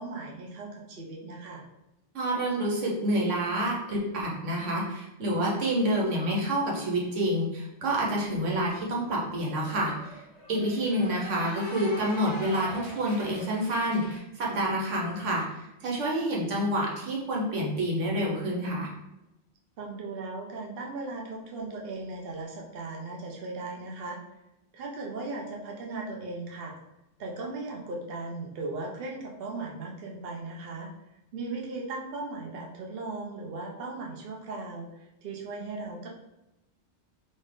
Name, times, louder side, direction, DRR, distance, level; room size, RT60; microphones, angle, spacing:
voice 1, 0.0-1.6 16.3-16.6 19.8-24.2 24.7-26.8 27.2-30.9 31.3-36.1, right 3 dB, 60° right, -1 dB, 0.8 m, -37 dB
voice 2, 2.1-10.1 10.5-18.9, right 1 dB, 90° right, -2 dB, 1.3 m, -28 dB
Cheering / Applause, 8.9-14.2, equal, 30° right, 1.1 m, -43 dB
4.2 x 2.5 x 3.6 m, 0.93 s
omnidirectional pair, 1.2 m